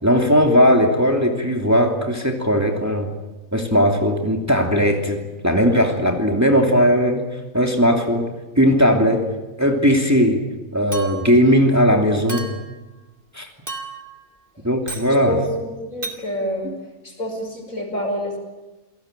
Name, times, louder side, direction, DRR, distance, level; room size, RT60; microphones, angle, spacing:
voice 1, 0.0-3.1 3.5-7.3 7.5-8.3 8.6-9.2 9.6-10.4 10.7-12.5 13.3-13.5 14.6-15.4 16.6-16.7, equal, 10° right, 2 dB, 2.8 m, -18 dB
Chink clink, 10.9-11.4 12.3-12.8 13.7-14.2 14.9-15.1 16.0-16.2, right 3 dB, 40° right, 2.8 m, -33 dB
voice 2, 15.3-16.7 17.0-18.4, equal, 70° left, 3 dB, 5.8 m, -27 dB
28.5 x 19.0 x 9.1 m, 1.1 s
omnidirectional pair, 1.5 m